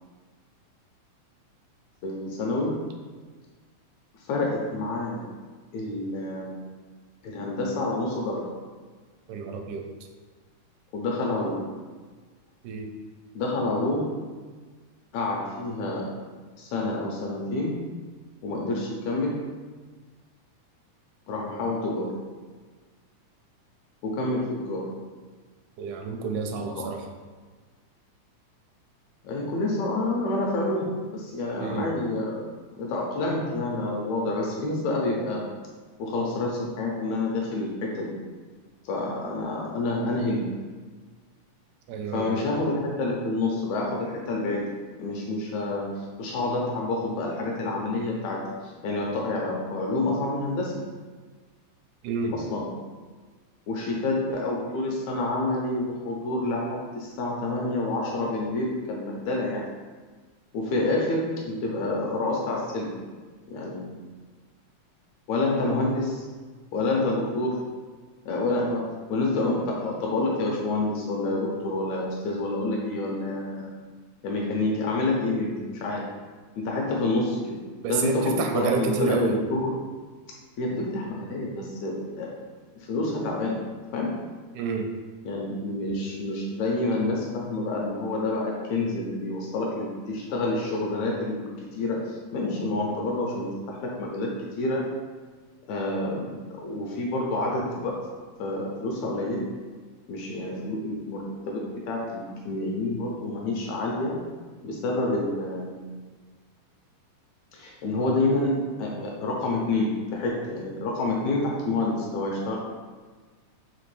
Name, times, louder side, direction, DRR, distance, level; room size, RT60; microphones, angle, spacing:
voice 1, 2.0-2.8 4.3-5.2 5.7-6.6 7.2-8.5 10.9-11.6 13.4-14.2 15.1-16.1 16.6-17.8 18.4-19.4 21.3-22.1 24.0-24.9 26.6-26.9 29.2-32.4 32.7-35.4 36.0-38.2 38.8-40.5 42.1-44.7 45.0-50.7 52.3-52.7 53.7-59.6 60.5-62.9 63.5-64.0 65.3-66.3 66.7-67.6 68.3-73.7 74.2-76.1 76.6-77.5 77.9-79.7 80.6-82.3 82.9-83.6 83.9-84.2 85.3-94.9 95.7-98.0 98.4-99.5 100.1-104.2 104.6-106.0 107.5-112.6, left 2 dB, 80° left, -2 dB, 1.7 m, -28 dB
voice 2, 9.3-9.9 12.6-12.9 25.8-27.1 31.6-31.9 41.9-42.5 52.0-52.3 77.8-79.4 84.6-84.9, right 5 dB, 85° right, 3 dB, 2.0 m, -29 dB
5.1 x 2.9 x 3.1 m, 1.4 s
omnidirectional pair, 3.5 m